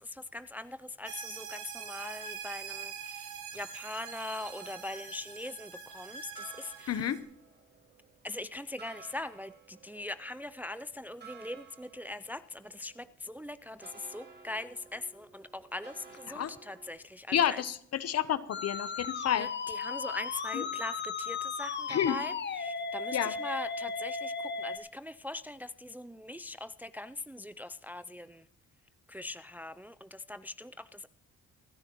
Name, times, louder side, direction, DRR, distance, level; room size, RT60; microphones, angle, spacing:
voice 1, 0.0-7.1 8.2-17.6 19.4-22.3 22.6-28.4 29.1-31.1, left 2 dB, 5° right, 13 dB, 0.4 m, -41 dB
sound 1, 1.1-7.2, right 6 dB, 90° right, 3.1 m, -44 dB
sound 2, 4.3-16.9, right 5 dB, 35° right, 2.3 m, -56 dB
voice 2, 6.9-7.2 16.3-16.5 17.3-19.5 20.5-20.6 21.9-22.2 23.1-23.3, left 10 dB, 55° left, 15 dB, 0.9 m, -30 dB
Musical instrument, 18.5-24.8, left 5 dB, 35° left, 1.1 m, -36 dB
27.0 x 9.7 x 3.0 m, 0.66 s
cardioid pair, 90°, 30 cm